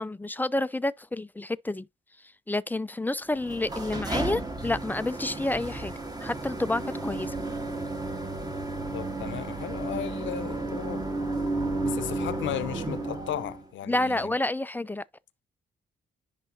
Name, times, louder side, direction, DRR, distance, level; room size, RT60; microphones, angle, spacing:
voice 1, 0.0-1.9 2.5-5.9 6.2-7.4 13.9-15.0, left 2 dB, 10° left, 0.4 m, -29 dB
sound 1, 3.3-13.7, right 2 dB, 20° right, 1.4 m, -33 dB
voice 2, 8.9-11.1 11.8-14.3, left 11 dB, 70° left, 0.8 m, -35 dB
10.5 x 3.8 x 2.7 m
cardioid pair, 90°, 20 cm